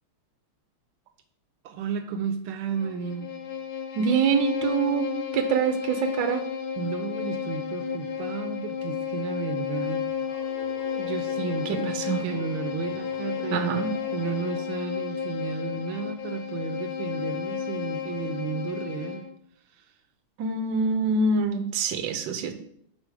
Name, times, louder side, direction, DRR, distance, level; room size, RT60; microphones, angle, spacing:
voice 1, 1.6-3.3 6.8-10.0 10.9-11.9 12.2-19.3 19.7-20.0, right 6 dB, 80° right, 6 dB, 1.4 m, -33 dB
Bowed string instrument, 2.7-19.3, left 7 dB, 70° left, 1.4 m, -32 dB
voice 2, 4.0-5.1 5.3-6.4 11.7-12.2 13.5-13.9 20.4-22.5, right 5 dB, 65° right, 6 dB, 1.4 m, -25 dB
Toilet monster or something, 9.8-14.7, left 3 dB, 55° left, 2.1 m, -45 dB
6.3 x 5.1 x 4.8 m, 0.67 s
omnidirectional pair, 2.3 m